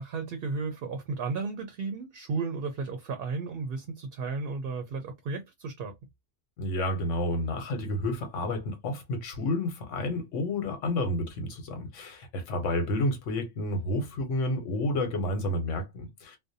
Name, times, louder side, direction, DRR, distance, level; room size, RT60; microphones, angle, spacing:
voice 1, 0.0-5.9, right 4 dB, 60° right, 0.6 m, -34 dB
voice 2, 6.6-16.4, left 1 dB, 90° left, 1.1 m, -30 dB
2.5 x 2.1 x 2.6 m
omnidirectional pair, 1.2 m